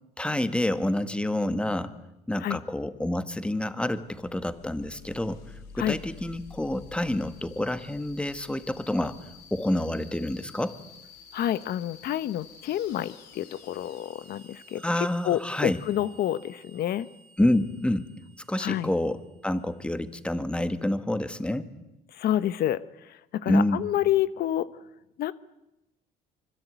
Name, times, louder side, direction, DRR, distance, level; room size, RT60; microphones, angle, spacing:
voice 1, 0.2-1.9 2.3-5.4 5.7-10.8 14.8-15.8 17.4-18.1 18.5-21.7 23.5-23.9, left 1 dB, 5° left, 11 dB, 1.8 m, -28 dB
sound 1, 3.9-20.2, left 4 dB, 90° left, 5.1 m, -51 dB
voice 2, 11.3-17.1 18.6-18.9 22.1-24.7 25.2-25.3, left 12 dB, 65° left, 15 dB, 1.0 m, -28 dB
25.5 x 24.5 x 9.3 m, 0.91 s
cardioid pair, 110°, 17 cm